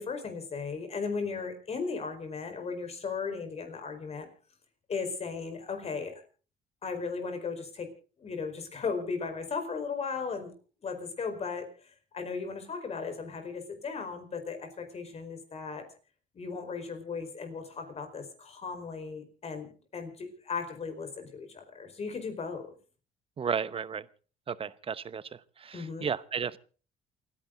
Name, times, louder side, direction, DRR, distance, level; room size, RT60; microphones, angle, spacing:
voice 1, 0.0-4.3 4.9-6.2 6.8-7.9 8.2-10.5 10.8-15.9 16.3-22.7 25.7-26.1, left 5 dB, 40° left, 7 dB, 4.7 m, -36 dB
voice 2, 23.4-24.1 24.5-26.6, right 6 dB, 35° right, 17 dB, 0.9 m, -34 dB
29.0 x 10.5 x 3.9 m, 0.38 s
cardioid pair, 110°, 17 cm